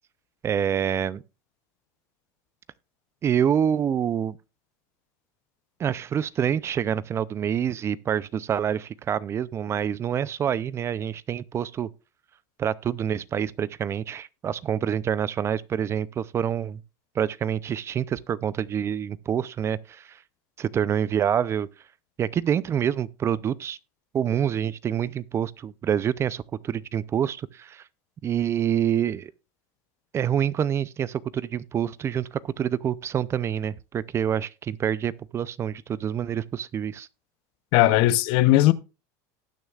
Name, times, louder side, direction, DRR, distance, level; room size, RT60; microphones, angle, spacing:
voice 1, 0.4-1.2 3.2-4.4 5.8-11.9 12.6-16.8 17.2-20.2 20.6-21.7 22.2-23.8 24.1-27.8 28.2-29.3 30.1-37.1, right 9 dB, 30° right, 0.4 m, -27 dB
voice 2, 37.7-38.7, left 15 dB, 60° left, 0.7 m, -18 dB
18.5 x 6.4 x 2.4 m
supercardioid pair, 115°, 9 cm